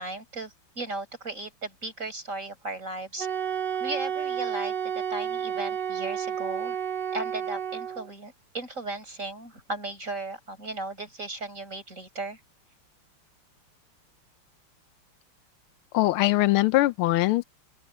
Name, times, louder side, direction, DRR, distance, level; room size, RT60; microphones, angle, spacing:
voice 1, 0.0-3.3 3.8-4.7 5.1-6.8 7.1-12.4, right 2 dB, 35° right, 6.8 m, -36 dB
Wind instrument woodwind instrument, 3.2-8.1, right 8 dB, 90° right, 0.5 m, -31 dB
voice 2, 15.9-17.4, left 17 dB, 85° left, 1.5 m, -22 dB
open air
omnidirectional pair, 2.3 m